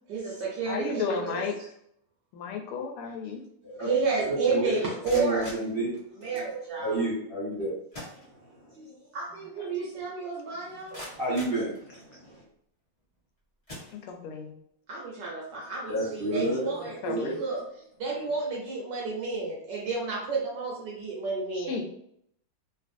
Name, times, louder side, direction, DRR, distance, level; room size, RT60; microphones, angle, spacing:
voice 1, 0.1-1.4 3.8-5.4 6.2-7.0 9.1-11.1 14.9-17.6 18.0-21.8, right 4 dB, 70° right, -3 dB, 1.1 m, -31 dB
voice 2, 0.7-1.5 2.3-3.4 9.6-9.7 14.0-14.6 16.7-17.4 21.6-21.8, left 5 dB, 85° left, 3 dB, 1.5 m, -33 dB
voice 3, 4.3-4.8 5.1-5.9 6.2-6.3 6.8-7.7 8.1-8.9 11.1-12.4 15.9-16.7 17.1-17.4, right 1 dB, 40° right, -8 dB, 0.8 m, -31 dB
sound 1, 5.0-6.5 7.5-7.6 7.9-8.8 9.2-9.3 9.8-9.9 10.5-12.3 13.0-13.2 13.6-14.5, left 1 dB, 30° left, 0.6 m, -45 dB
3.3 x 2.4 x 2.5 m, 0.71 s
omnidirectional pair, 2.3 m